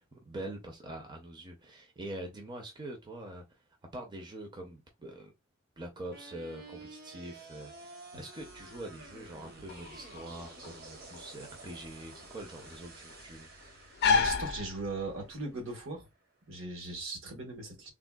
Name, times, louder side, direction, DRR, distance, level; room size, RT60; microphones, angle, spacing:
voice 1, 0.0-3.4 3.9-5.3 5.8-13.5, right 1 dB, 20° right, 0.5 m, -44 dB
sound 1, 6.1-16.2, right 3 dB, 45° right, 0.8 m, -51 dB
sound 2, 8.4-15.4, left 5 dB, 50° left, 0.5 m, -34 dB
voice 2, 14.0-16.0 16.5-17.9, right 2 dB, 70° right, 1.1 m, -39 dB
3.5 x 2.2 x 2.2 m
head